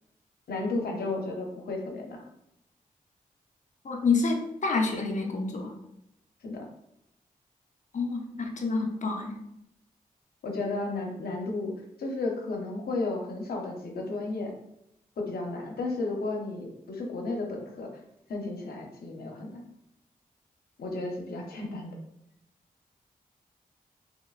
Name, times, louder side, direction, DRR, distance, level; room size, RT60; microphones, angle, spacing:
voice 1, 0.5-2.2 6.4-6.6 10.4-11.7 12.0-14.5 15.2-17.9 18.3-19.6 20.8-22.0, left 2 dB, 85° left, 1 dB, 0.8 m, -33 dB
voice 2, 3.8-5.7 7.9-9.4, left 4 dB, 50° left, 2 dB, 0.7 m, -28 dB
5.8 x 2.9 x 2.4 m, 0.80 s
cardioid pair, 50°, 16 cm